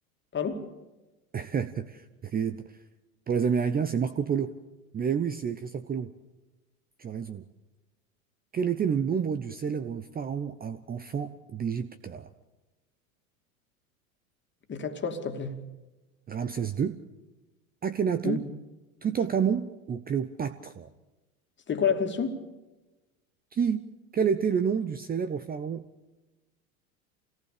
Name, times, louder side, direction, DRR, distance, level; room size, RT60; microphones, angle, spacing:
voice 1, 0.3-0.7 14.7-15.6 18.2-18.4 21.7-22.4, left 6 dB, 25° left, 2.6 m, -29 dB
voice 2, 1.3-2.8 3.3-4.5 4.9-6.1 7.0-7.4 8.5-12.3 16.3-17.0 17.8-18.4 19.0-20.9 23.5-25.9, right 7 dB, 20° right, 0.8 m, -29 dB
26.0 x 18.0 x 6.8 m
hypercardioid pair, 90°, 43 cm